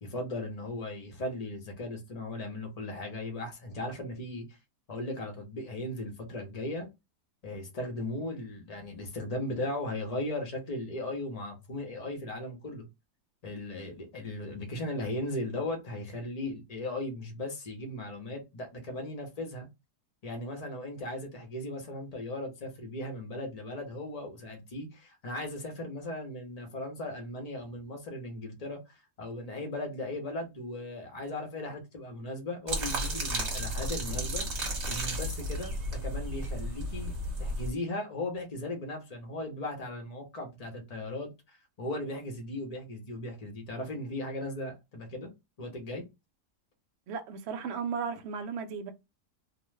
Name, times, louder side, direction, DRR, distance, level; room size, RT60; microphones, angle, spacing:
voice 1, 0.0-4.4 4.9-6.9 7.4-12.9 13.4-19.7 20.2-34.4 34.9-37.1 37.4-45.3 45.6-46.0, left 1 dB, 40° left, 0.6 m, -37 dB
sound 1, 32.7-37.7, right 1 dB, 45° right, 1.2 m, -33 dB
voice 2, 47.1-48.9, right 6 dB, 75° right, 0.6 m, -35 dB
3.0 x 2.0 x 3.1 m
omnidirectional pair, 1.7 m